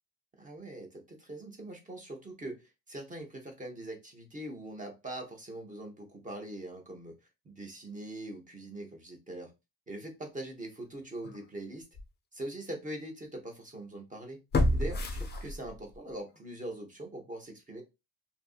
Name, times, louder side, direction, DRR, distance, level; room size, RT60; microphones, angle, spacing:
voice 1, 0.4-7.1 7.4-9.5 9.9-11.8 12.3-14.4 14.7-17.8, right 1 dB, 20° right, 3 dB, 0.7 m, -42 dB
sound 1, 11.2-11.4 11.9-12.0 14.5-16.0 16.3-16.4, left 1 dB, 25° left, 0.4 m, -29 dB
2.7 x 2.5 x 2.4 m, 0.25 s
cardioid pair, 125°, 42 cm